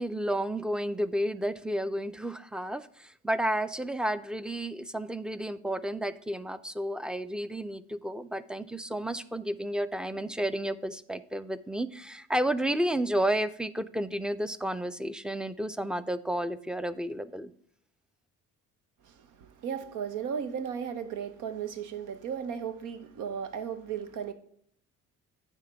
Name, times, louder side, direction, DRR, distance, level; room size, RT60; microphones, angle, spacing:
voice 1, 0.0-17.5, right 1 dB, 5° right, 0.4 m, -31 dB
voice 2, 19.0-24.3, right 7 dB, 90° right, 0.9 m, -35 dB
9.1 x 3.5 x 5.6 m
cardioid pair, 90°, 30 cm